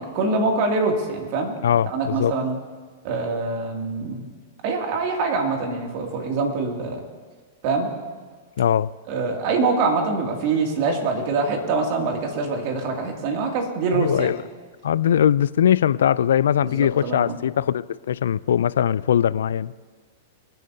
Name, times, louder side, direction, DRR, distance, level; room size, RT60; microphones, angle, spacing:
voice 1, 0.0-1.5 1.9-2.6 3.0-4.2 4.6-7.0 7.6-7.9 9.1-14.3 16.6-17.3, right 3 dB, 55° right, 2 dB, 2.5 m, -24 dB
voice 2, 1.6-2.3 8.6-8.9 13.9-14.4 14.8-19.7, left 9 dB, 75° left, 19 dB, 0.3 m, -21 dB
26.5 x 9.0 x 2.8 m, 1.5 s
hypercardioid pair, 110°, 0 cm